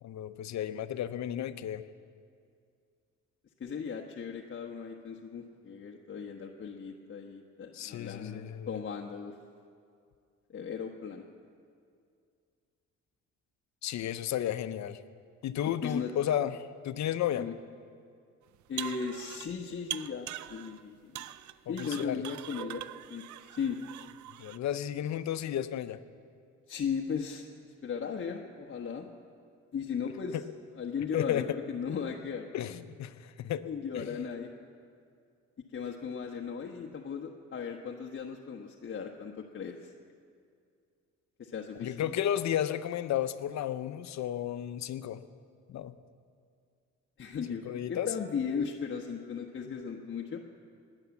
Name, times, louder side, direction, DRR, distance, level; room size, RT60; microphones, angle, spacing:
voice 1, 0.0-1.8 7.7-8.8 13.8-15.0 15.4-17.5 21.7-22.2 24.4-26.0 30.3-30.4 31.1-31.4 32.5-33.6 33.9-34.1 41.8-45.2 45.7-45.9 47.5-48.1, left 10 dB, 65° left, 12 dB, 0.8 m, -33 dB
voice 2, 3.6-9.3 10.5-11.2 15.8-16.1 17.4-17.5 18.7-21.3 21.7-22.8 23.1-23.8 26.7-29.1 29.7-30.4 30.8-32.5 33.6-34.5 35.7-39.9 41.4-42.1 47.2-50.4, left 6 dB, 40° left, 1 dB, 1.1 m, -37 dB
sound 1, 18.5-19.5 19.9-20.8 21.1-24.6, right 13 dB, 70° right, 0.6 m, -42 dB
19.0 x 10.0 x 7.2 m, 2.3 s
cardioid pair, 90°, 30 cm